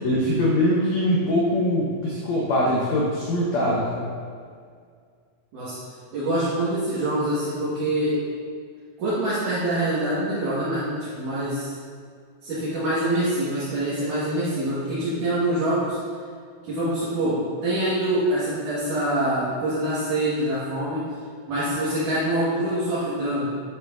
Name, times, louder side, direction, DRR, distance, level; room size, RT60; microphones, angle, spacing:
voice 1, 0.0-4.1, left 1 dB, 85° left, -4 dB, 1.5 m, -22 dB
voice 2, 6.1-8.2 9.0-11.8 12.4-16.0 16.6-21.0 21.5-23.5, right 1 dB, 60° right, -12 dB, 3.0 m, -25 dB
9.3 x 8.2 x 2.7 m, 2.1 s
omnidirectional pair, 4.4 m